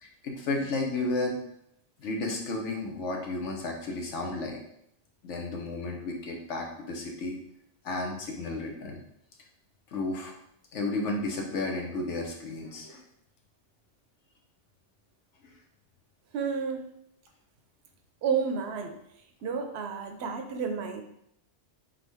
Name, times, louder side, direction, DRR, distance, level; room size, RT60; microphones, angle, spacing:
voice 1, 0.0-1.4 2.0-4.6 5.2-7.4 7.8-9.0 9.9-10.3 10.7-13.0, left 2 dB, 85° left, 2 dB, 1.2 m, -32 dB
voice 2, 16.3-17.0 18.2-19.0 19.4-21.0, right 6 dB, 70° right, 6 dB, 0.8 m, -31 dB
3.7 x 3.7 x 3.4 m, 0.74 s
omnidirectional pair, 1.2 m